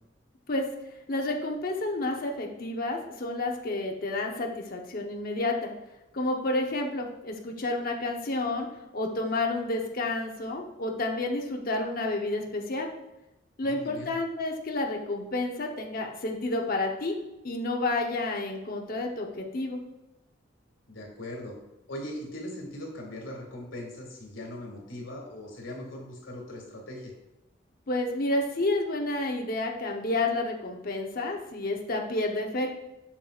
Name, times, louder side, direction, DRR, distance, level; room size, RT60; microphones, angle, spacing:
voice 1, 1.1-5.7 6.1-8.7 8.9-12.9 13.6-17.1 17.4-19.8 27.9-32.7, left 2 dB, 50° left, 2 dB, 0.8 m, -30 dB
voice 2, 13.6-14.1 20.9-21.5 21.9-27.1, left 1 dB, 90° left, 0 dB, 2.0 m, -40 dB
7.2 x 6.5 x 2.4 m, 0.97 s
head